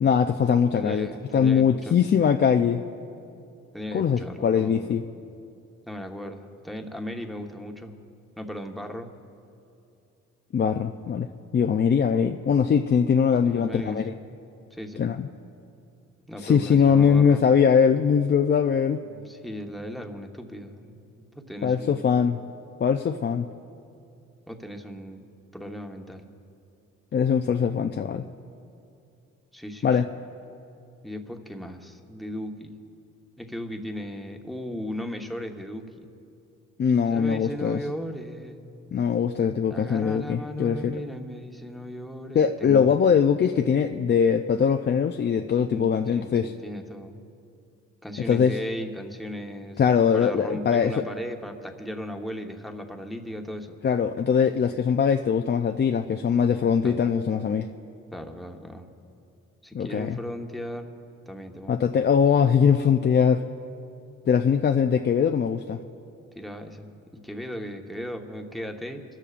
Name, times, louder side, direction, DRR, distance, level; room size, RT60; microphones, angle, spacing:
voice 1, 0.0-1.1 1.3-2.8 3.9-5.0 10.5-11.3 11.5-14.1 15.0-15.3 16.4-19.0 21.6-22.4 22.8-23.5 27.1-28.3 29.8-30.1 36.8-37.8 38.9-41.0 42.3-46.5 48.3-48.6 49.8-51.0 53.8-57.7 59.7-60.2 61.7-63.4 64.3-65.8, left 7 dB, 35° left, 5 dB, 0.5 m, -21 dB
voice 2, 0.7-1.9 3.7-5.0 5.9-7.9 8.4-9.1 13.4-14.2 14.7-15.0 16.3-17.4 19.1-21.0 21.3-22.1 24.5-25.3 25.5-26.2 29.5-30.0 31.0-32.7 33.4-36.1 37.1-38.6 39.7-42.9 45.7-47.2 48.0-49.8 50.1-53.8 56.8-57.1 58.1-58.9 59.6-60.9 61.3-61.8 66.4-69.0, equal, ahead, 3 dB, 1.2 m, -36 dB
26.5 x 13.5 x 2.5 m, 2.5 s
cardioid pair, 90°, 30 cm